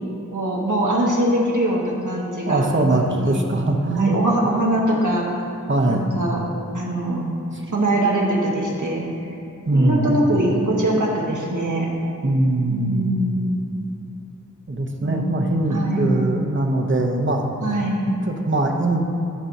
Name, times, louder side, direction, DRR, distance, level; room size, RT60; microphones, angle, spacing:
voice 1, 0.3-3.4 4.0-5.3 5.9-6.4 6.7-7.2 7.7-9.0 9.7-11.9 12.7-13.6 15.0-15.3 15.7-16.1 17.6-18.0, right 1 dB, 75° right, -3 dB, 1.4 m, -22 dB
voice 2, 2.5-4.2 5.7-6.2 7.5-7.6 9.7-10.1 12.2-13.1 14.7-17.5 18.1-19.0, right 2 dB, 40° right, 2 dB, 0.8 m, -21 dB
12.5 x 5.9 x 2.8 m, 2.7 s
wide cardioid pair, 45°, 31 cm